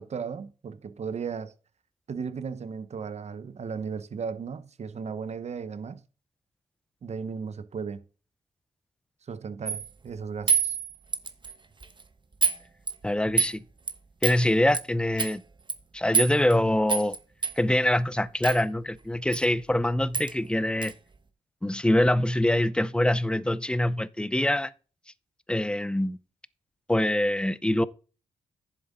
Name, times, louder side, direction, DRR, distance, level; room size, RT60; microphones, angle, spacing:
voice 1, 0.0-1.5 2.1-6.0 7.0-8.0 9.3-10.8, right 6 dB, 55° right, 1.0 m, -35 dB
sound 1, 9.6-9.9 10.5-11.5 11.8-12.0 12.4-12.6 12.9-13.5 13.9-14.0 14.2-14.4 14.7-14.8 15.2-15.3 15.7-15.8 16.1-16.5 16.9-17.2 17.4-17.6 18.4-18.6 19.3-19.4 19.7-19.8 20.1-20.3 20.8-20.9, right 5 dB, 35° right, 1.1 m, -26 dB
voice 2, 13.0-13.6 14.2-15.4 15.9-17.2 17.6-20.9 21.6-24.7 25.5-26.2 26.9-27.9, left 1 dB, 5° left, 0.6 m, -24 dB
10.5 x 7.4 x 3.9 m
cardioid pair, 60°, 13 cm